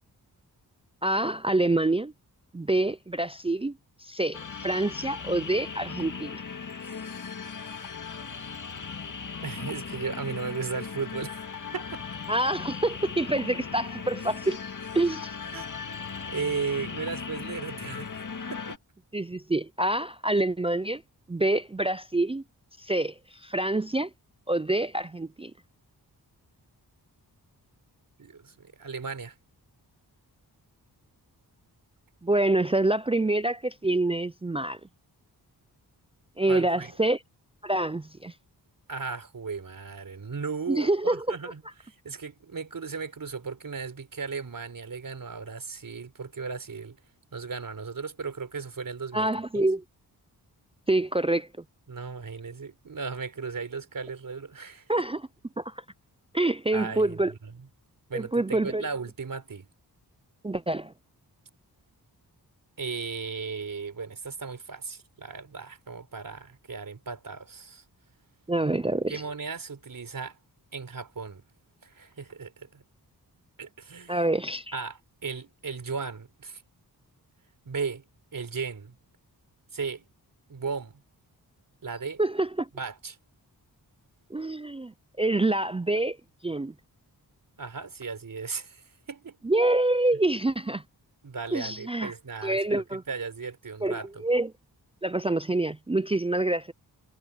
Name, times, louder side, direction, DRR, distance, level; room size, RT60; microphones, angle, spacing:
voice 1, 1.0-2.1 2.5-3.7 4.0-6.4 12.3-14.6 14.9-15.3 19.1-21.0 21.3-22.4 22.8-23.1 23.4-24.1 24.5-25.5 32.2-34.8 36.4-37.2 37.6-38.3 40.7-41.4 49.1-49.8 50.9-51.5 54.9-55.2 55.6-55.7 56.3-57.3 58.1-58.8 60.4-60.9 68.5-69.2 74.1-74.8 82.2-82.7 84.3-86.2 86.4-86.7 89.4-90.8 91.5-92.1 92.4-93.0 93.8-94.5 95.0-96.7, right 2 dB, 15° right, 0.4 m, -26 dB
sound 1, 4.3-18.8, left 5 dB, 50° left, 2.1 m, -38 dB
voice 2, 9.4-11.4 11.7-12.0 15.5-15.7 16.3-18.1 18.5-18.8 28.2-29.3 36.5-36.9 38.9-47.0 47.3-49.3 49.5-49.6 51.9-54.8 56.7-57.5 58.1-59.7 62.8-67.8 69.1-70.4 70.7-71.4 71.8-72.8 73.6-74.2 74.7-76.6 77.7-78.0 78.3-78.9 79.7-80.0 80.5-81.0 81.8-82.2 82.7-83.2 87.6-89.4 91.2-94.3, right 5 dB, 55° right, 4.3 m, -36 dB
wide cardioid pair, 95°, 40 cm